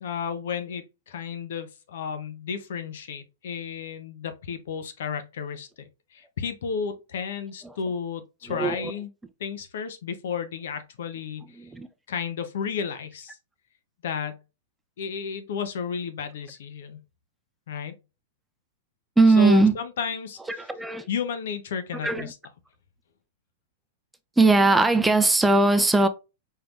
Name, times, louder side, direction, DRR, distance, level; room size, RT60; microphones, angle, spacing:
voice 1, 0.0-5.7 6.1-9.1 9.4-11.7 12.1-13.4 14.0-14.4 15.0-17.0 17.7-18.0 19.4-20.7 21.1-22.4, left 6 dB, 75° left, 0.7 m, -32 dB
voice 2, 8.5-8.9 11.6-11.9 19.2-19.7 20.5-21.1 22.0-22.3 24.4-26.1, right 3 dB, 10° right, 0.5 m, -19 dB
4.6 x 3.3 x 2.5 m
hypercardioid pair, 120°, 0 cm